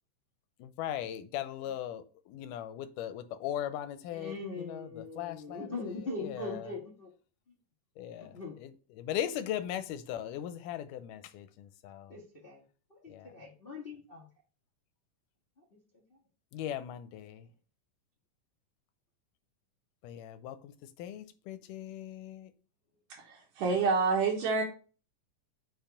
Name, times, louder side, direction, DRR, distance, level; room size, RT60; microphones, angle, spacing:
voice 1, 0.6-6.7 8.0-12.2 13.1-13.3 16.5-17.5 20.0-22.5, left 11 dB, 90° left, 2.1 m, -39 dB
voice 2, 4.1-7.1 8.2-8.5 12.1-12.6 12.9-14.2, left 3 dB, 65° left, 0.5 m, -41 dB
voice 3, 23.1-24.6, right 4 dB, 80° right, 2.7 m, -28 dB
5.4 x 4.6 x 5.0 m
omnidirectional pair, 3.7 m